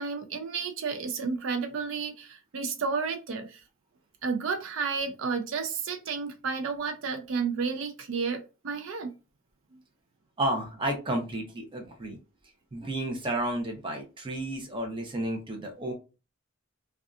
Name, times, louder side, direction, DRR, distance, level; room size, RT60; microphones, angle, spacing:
voice 1, 0.0-3.6 4.2-9.1, right 5 dB, 70° right, 6 dB, 0.4 m, -31 dB
voice 2, 10.4-12.2 12.7-15.9, right 1 dB, 25° right, 2 dB, 0.6 m, -32 dB
2.6 x 2.3 x 2.3 m, 0.30 s
head